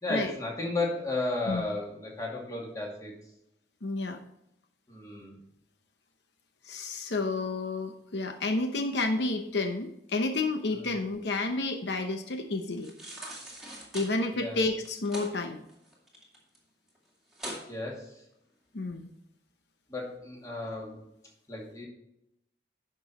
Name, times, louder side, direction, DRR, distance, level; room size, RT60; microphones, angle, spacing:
voice 1, 0.0-3.1 4.9-5.4 10.7-10.9 14.3-14.6 17.7-18.2 19.9-21.0 21.5-21.9, left 2 dB, 20° left, -2 dB, 2.3 m, -34 dB
voice 2, 3.8-4.2 6.7-12.9 13.9-15.6 18.7-19.1, left 2 dB, 75° left, 6 dB, 0.8 m, -30 dB
sound 1, 12.8-14.1 14.8-15.3 15.7-16.6 16.9-17.0 17.3-17.6 18.1-18.2, right 1 dB, ahead, 2.2 m, -41 dB
10.5 x 6.0 x 4.1 m, 0.81 s
head